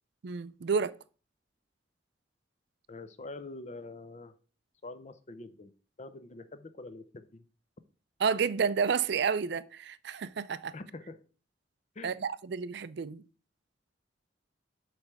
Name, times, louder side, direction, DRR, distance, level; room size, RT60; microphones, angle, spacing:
voice 1, 0.2-0.9 8.2-10.7 12.0-13.2, right 6 dB, 65° right, 0.4 m, -30 dB
voice 2, 2.9-4.4 4.8-5.7 6.0-7.4 10.7-11.2 11.9-12.3, left 2 dB, 40° left, 0.7 m, -45 dB
8.0 x 3.3 x 5.9 m
head